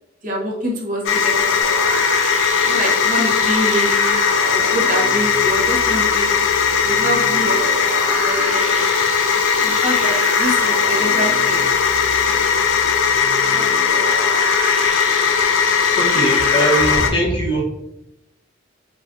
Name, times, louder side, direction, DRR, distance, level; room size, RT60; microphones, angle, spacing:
voice 1, 0.2-1.9 2.6-4.2 4.5-6.5 6.8-7.6 8.2-8.8 9.6-11.7 12.3-12.5 13.5-13.9, equal, 45° right, -3 dB, 0.8 m, -26 dB
sound 1, 1.1-17.1, left 6 dB, 75° left, 0.3 m, -18 dB
sound 2, 1.6-17.0, right 3 dB, 90° right, 0.5 m, -30 dB
voice 2, 15.7-17.6, right 1 dB, 25° left, -5 dB, 0.8 m, -21 dB
3.4 x 2.3 x 2.5 m, 0.85 s
head